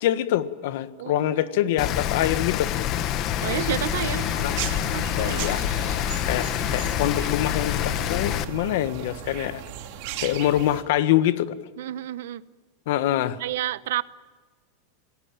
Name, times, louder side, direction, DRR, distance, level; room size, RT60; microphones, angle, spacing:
voice 1, 0.0-2.7 4.3-4.6 5.2-5.6 6.3-9.6 10.2-11.5 12.9-13.4, left 13 dB, 65° left, 1.4 m, -25 dB
voice 2, 1.0-1.8 3.4-4.3 4.9-5.7 11.8-12.4 13.4-14.0, right 13 dB, 75° right, 0.9 m, -31 dB
Rain, 1.8-8.4, left 11 dB, 35° left, 1.2 m, -26 dB
sound 1, 3.6-10.8, right 11 dB, 50° right, 2.6 m, -36 dB
27.5 x 18.5 x 9.0 m
supercardioid pair, 155°, 0 cm